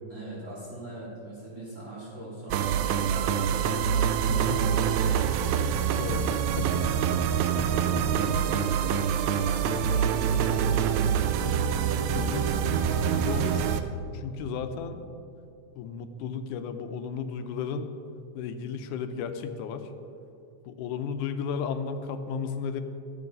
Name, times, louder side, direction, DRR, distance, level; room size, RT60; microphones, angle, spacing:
voice 1, 0.1-3.6 4.2-5.2 6.8-7.0 7.6-11.2, right 1 dB, 25° right, -7 dB, 2.6 m, -40 dB
sound 1, 2.5-13.8, right 8 dB, 80° right, 1.7 m, -25 dB
voice 2, 4.3-4.6 6.0-6.7 11.5-11.6 12.1-13.9 14.1-15.1 15.8-17.9 18.3-19.9 20.7-22.8, left 6 dB, 80° left, 8 dB, 2.1 m, -34 dB
12.5 x 8.5 x 5.3 m, 2.7 s
omnidirectional pair, 3.6 m